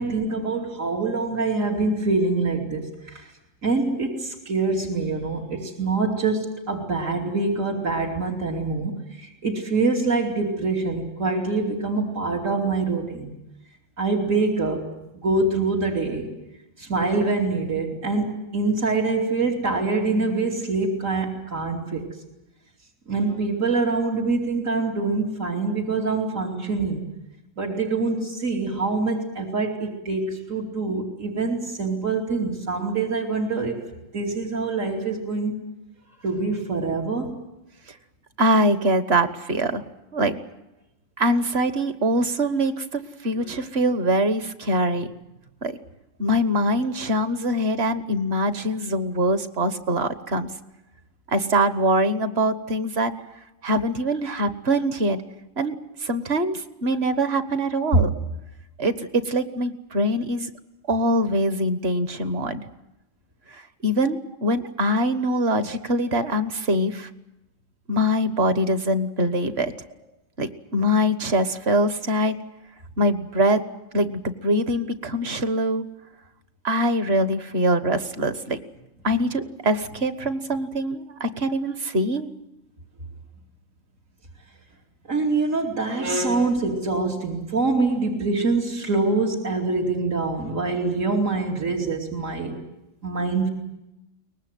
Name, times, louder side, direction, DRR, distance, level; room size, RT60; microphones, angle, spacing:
voice 1, 0.0-3.3 3.6-13.3 14.0-14.9 15.2-16.3 16.8-22.1 23.1-27.0 27.6-33.9 34.1-35.5 36.2-37.4 43.3-43.5 57.9-58.0 85.1-92.6 93.0-93.5, right 3 dB, 80° right, -1 dB, 3.3 m, -25 dB
voice 2, 38.4-39.9 40.1-40.4 41.2-45.1 45.6-45.8 46.2-50.5 51.3-53.1 53.6-55.2 55.6-58.1 58.8-60.5 60.9-62.7 63.5-67.1 67.9-69.7 70.4-72.3 73.0-73.6 73.9-75.8 76.6-78.6 79.0-82.3, equal, 55° right, 11 dB, 1.5 m, -23 dB
23.0 x 20.0 x 9.2 m, 0.91 s
omnidirectional pair, 1.3 m